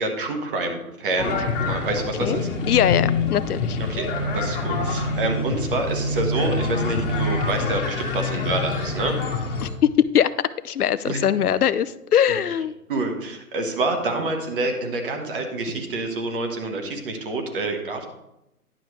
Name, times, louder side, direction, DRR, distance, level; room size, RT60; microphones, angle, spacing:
voice 1, 0.0-2.5 3.8-4.0 4.3-9.2 11.1-11.2 12.9-18.0, right 2 dB, 35° right, 4 dB, 1.4 m, -27 dB
sound 1, 1.2-9.7, left 3 dB, 35° left, 1.7 m, -26 dB
voice 2, 2.7-3.8 9.6-9.7 10.1-10.3 10.6-12.8, left 9 dB, 80° left, 15 dB, 0.6 m, -21 dB
10.5 x 7.0 x 3.2 m, 0.88 s
figure-of-eight pair, 135°, 45 cm